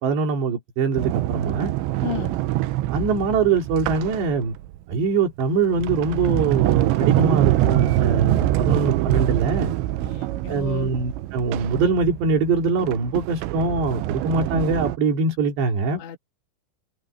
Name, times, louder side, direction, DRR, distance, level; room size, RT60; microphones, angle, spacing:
voice 1, 0.0-1.7 2.9-4.5 4.9-9.7 10.5-16.0, right 4 dB, 65° right, 5.5 m, -23 dB
Sliding door, 1.0-4.8 5.4-15.0, right 15 dB, 80° right, 3.0 m, -24 dB
voice 2, 2.0-2.4 10.0-10.9 16.0-16.2, left 11 dB, 70° left, 4.3 m, -33 dB
omnidirectional pair, 5.4 m